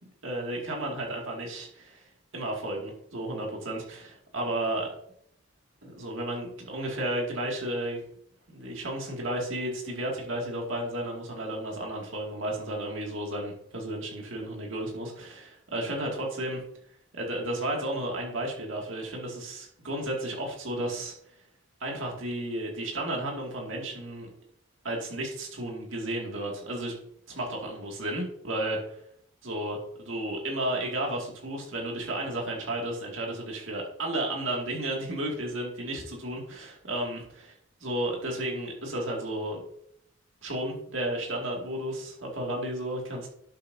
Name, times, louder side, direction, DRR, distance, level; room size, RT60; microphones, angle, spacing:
voice 1, 0.2-2.0 2.3-4.9 5.8-8.0 8.5-16.6 17.1-21.1 21.8-24.3 24.8-26.9 27.3-28.8 29.4-29.8 30.1-37.2 37.8-39.6 40.4-43.3, right 1 dB, 70° right, -1 dB, 2.3 m, -33 dB
11.5 x 7.4 x 2.7 m, 0.70 s
head